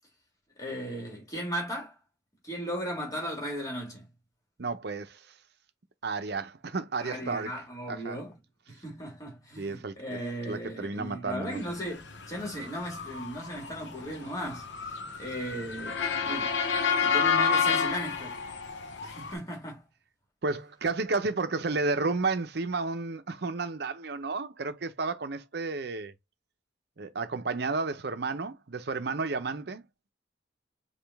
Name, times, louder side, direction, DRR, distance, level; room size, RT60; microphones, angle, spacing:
voice 1, 0.6-2.0 2.4-4.1 7.0-8.3 8.7-14.7 15.2-16.6 17.0-18.4 19.0-19.8, equal, 20° left, 1.8 m, -36 dB
voice 2, 4.6-5.3 6.0-7.5 7.9-8.2 9.6-10.0 10.5-11.6 20.4-26.1 27.0-29.9, right 3 dB, 60° right, 0.6 m, -32 dB
Motor vehicle (road) / Siren, 12.1-19.3, left 6 dB, 70° left, 0.8 m, -29 dB
5.0 x 2.3 x 3.4 m
head